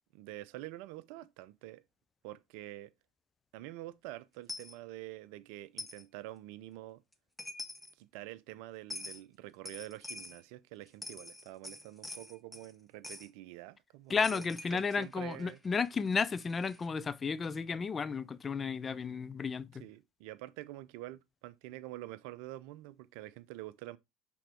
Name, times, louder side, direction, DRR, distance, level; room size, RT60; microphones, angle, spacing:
voice 1, 0.1-1.8 2.2-2.9 3.5-7.0 8.0-15.6 19.8-24.0, right 16 dB, 65° right, 0.5 m, -47 dB
Coin (dropping), 4.5-4.7 5.8-6.0 7.1-7.2 7.4-7.9 8.9-9.2 9.7-10.4 10.9-12.7 13.0-13.3 14.2-16.9, left 2 dB, 5° left, 1.1 m, -46 dB
voice 2, 14.1-19.8, left 5 dB, 30° left, 0.5 m, -33 dB
5.9 x 3.8 x 4.4 m
hypercardioid pair, 70°, 0 cm